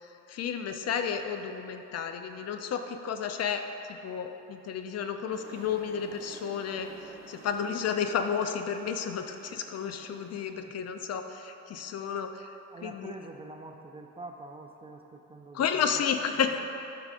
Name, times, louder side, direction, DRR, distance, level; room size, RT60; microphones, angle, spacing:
voice 1, 0.3-3.6 3.9-6.9 7.3-12.5 12.8-13.1 15.5-16.6, left 7 dB, 55° left, 7 dB, 0.5 m, -32 dB
sound 1, 5.3-10.5, right 3 dB, 45° right, 0.8 m, -51 dB
voice 2, 12.7-15.9 16.4-16.6, right 2 dB, 20° right, 3 dB, 0.3 m, -45 dB
8.1 x 5.0 x 2.5 m, 2.9 s
cardioid pair, 90°, 30 cm